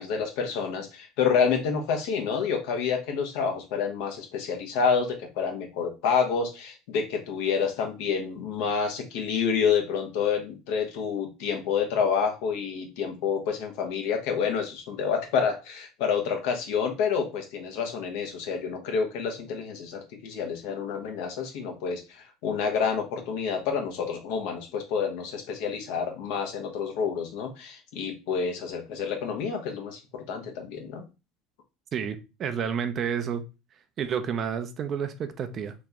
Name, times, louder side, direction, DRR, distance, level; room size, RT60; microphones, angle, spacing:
voice 1, 0.0-31.0, left 6 dB, 70° left, 0.9 m, -28 dB
voice 2, 31.9-33.4 34.0-35.7, right 7 dB, 45° right, 0.5 m, -30 dB
3.0 x 2.8 x 3.5 m
hypercardioid pair, 85°, 0 cm